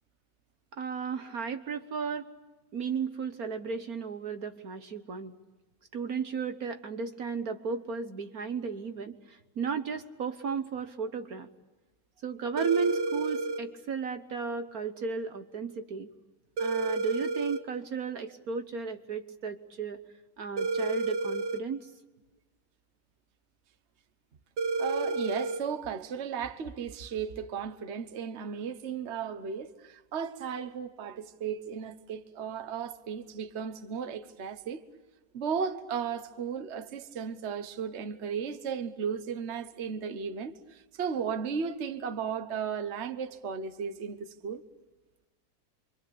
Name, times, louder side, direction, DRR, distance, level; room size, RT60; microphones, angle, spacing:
voice 1, 0.7-2.3 2.7-5.3 5.9-11.5 12.2-16.1 16.6-20.0 20.4-21.9, right 5 dB, 55° right, 1.5 m, -34 dB
sound 1, 12.6-13.6 16.6-17.6 20.6-21.6 24.6-25.6, right 3 dB, 75° right, 2.0 m, -30 dB
voice 2, 24.8-34.8 35.3-44.6, right 7 dB, 40° right, 1.3 m, -35 dB
27.5 x 25.0 x 8.5 m
omnidirectional pair, 1.9 m